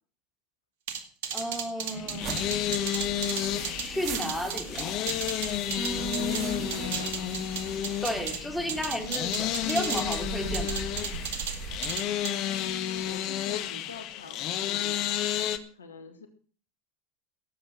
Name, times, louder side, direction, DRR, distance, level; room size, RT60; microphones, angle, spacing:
sound 1, 0.9-6.4 6.7-8.4 8.7-10.2 10.5-11.6 11.8-12.3, right 7 dB, 65° right, 2.1 m, -34 dB
voice 1, 1.3-2.5 3.8-5.1 5.7-6.9 8.0-10.8, equal, ahead, 2 dB, 3.6 m, -33 dB
sound 2, 1.8-15.6, left 11 dB, 50° left, 1.3 m, -32 dB
sound 3, 2.2-12.0, right 5 dB, 45° right, 3.0 m, -40 dB
voice 2, 5.9-7.3 12.4-15.1 15.7-16.3, left 4 dB, 85° left, 7 dB, 1.8 m, -44 dB
17.5 x 8.0 x 6.4 m, 0.43 s
figure-of-eight pair, 80°, 0 cm